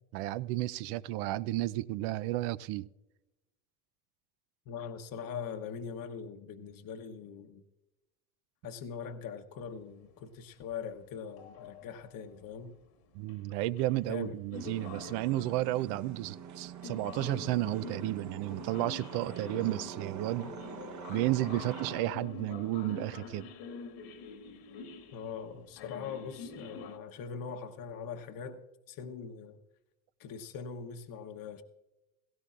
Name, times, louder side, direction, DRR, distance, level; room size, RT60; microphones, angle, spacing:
voice 1, 0.1-2.9 13.1-20.5 21.1-23.5, right 16 dB, 65° right, 0.6 m, -32 dB
voice 2, 4.7-7.6 8.6-12.8 14.1-14.4 25.1-29.6 30.2-31.6, left 6 dB, 50° left, 1.1 m, -42 dB
sound 1, 11.4-12.3 13.3-13.4 13.8-14.1 14.5-15.9 16.8-27.0, left 5 dB, 65° left, 1.7 m, -46 dB
sound 2, 14.5-22.0, right 7 dB, 40° right, 1.1 m, -45 dB
17.0 x 16.5 x 2.5 m
hypercardioid pair, 75°, 42 cm